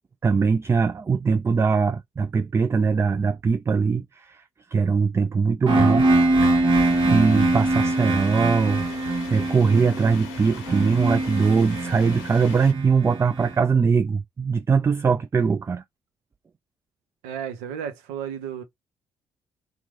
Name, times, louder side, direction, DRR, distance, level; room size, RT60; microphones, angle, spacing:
voice 1, 0.2-4.4 4.7-6.1 6.4-15.8, right 5 dB, 25° right, 0.3 m, -22 dB
sound 1, 5.7-13.5, right 2 dB, 45° right, 1.0 m, -23 dB
sound 2, 6.7-12.7, left 8 dB, 75° left, 0.7 m, -41 dB
voice 2, 17.2-18.6, right 8 dB, 75° right, 0.6 m, -33 dB
3.0 x 2.1 x 3.5 m
hypercardioid pair, 45°, 11 cm